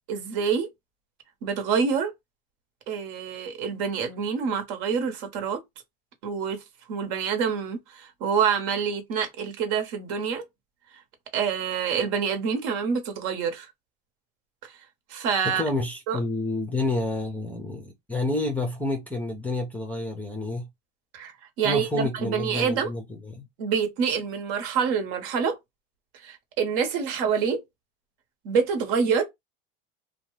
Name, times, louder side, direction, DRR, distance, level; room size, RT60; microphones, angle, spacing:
voice 1, 0.1-0.7 1.4-2.1 2.9-5.6 6.2-6.6 6.9-10.4 11.3-13.7 15.1-15.6 16.1-16.2 21.1-22.9 23.6-25.6 26.2-27.6 28.4-29.2, right 6 dB, 65° right, 1.1 m, -26 dB
voice 2, 15.4-20.7 21.6-23.5, left 2 dB, 5° left, 0.5 m, -29 dB
2.7 x 2.2 x 3.1 m
supercardioid pair, 155°, 29 cm